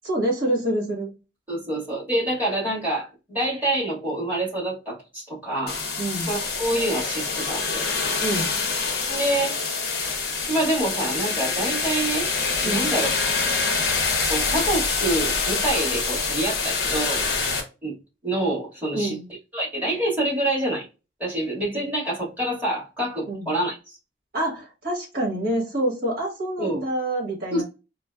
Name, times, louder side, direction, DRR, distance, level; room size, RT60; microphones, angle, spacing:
voice 1, 0.0-1.1 6.0-6.3 8.2-8.5 12.6-12.9 18.9-19.2 23.3-23.5 24.3-27.6, right 1 dB, 50° right, 1.3 m, -26 dB
voice 2, 1.5-5.8 6.3-7.8 9.0-9.6 10.5-12.3 12.6-13.1 14.3-17.2 17.8-17.9 18.2-19.2 19.5-20.8 21.2-24.0 26.6-26.8 27.5-27.6, right 1 dB, 10° right, 1.7 m, -26 dB
sound 1, 5.7-17.6, left 4 dB, 55° left, 0.7 m, -25 dB
4.3 x 2.1 x 2.2 m
head